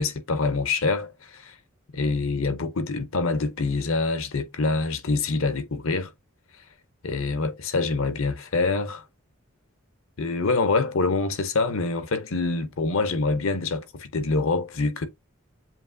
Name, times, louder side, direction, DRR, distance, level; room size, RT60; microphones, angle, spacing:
voice 1, 0.0-1.5 1.9-6.1 7.0-9.0 10.2-15.1, left 3 dB, 70° left, 0.7 m, -25 dB
7.3 x 2.8 x 2.6 m
head